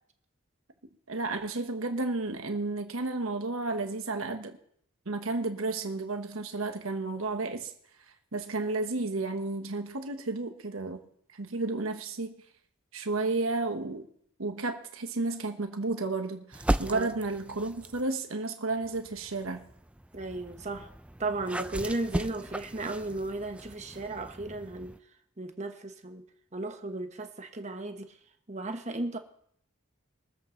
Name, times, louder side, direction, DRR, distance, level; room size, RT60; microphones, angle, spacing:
voice 1, 1.1-4.6 5.1-7.7 8.3-11.0 11.3-12.3 12.9-14.1 14.4-19.6, right 3 dB, 85° right, 6 dB, 1.3 m, -32 dB
sound 1, 16.5-18.1 18.8-25.0, right 1 dB, 5° right, 0.4 m, -37 dB
voice 2, 20.1-20.9 21.2-24.9 25.4-26.2 26.5-28.1 28.5-29.2, right 2 dB, 35° right, 6 dB, 1.1 m, -35 dB
22.5 x 7.7 x 3.9 m, 0.67 s
head